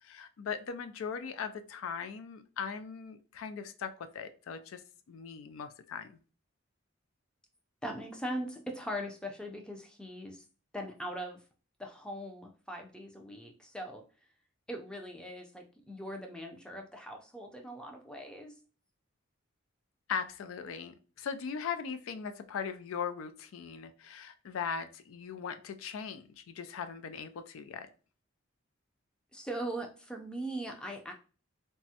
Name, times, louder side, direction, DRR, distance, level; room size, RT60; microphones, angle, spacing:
voice 1, 0.0-4.8 5.1-6.2 20.1-27.9, left 6 dB, 90° left, 9 dB, 0.4 m, -39 dB
voice 2, 7.8-10.4 10.7-11.4 11.8-14.0 14.7-18.6 29.3-31.1, equal, 5° left, 2 dB, 0.4 m, -40 dB
3.4 x 2.0 x 2.7 m, 0.36 s
head